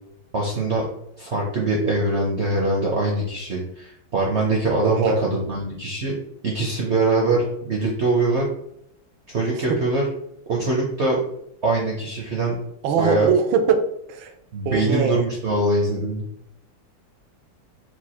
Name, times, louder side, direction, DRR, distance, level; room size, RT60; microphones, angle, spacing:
voice 1, 0.3-0.9 1.2-6.1 6.4-8.4 9.3-10.0 10.5-11.2 11.6-12.6 13.0-13.3 14.5-16.2, right 2 dB, 60° right, -2 dB, 0.7 m, -23 dB
voice 2, 4.8-5.2 9.5-9.8 12.8-13.8 14.1-14.3 14.6-15.2, right 6 dB, 85° right, 6 dB, 1.4 m, -21 dB
4.6 x 2.3 x 4.2 m, 0.75 s
omnidirectional pair, 2.1 m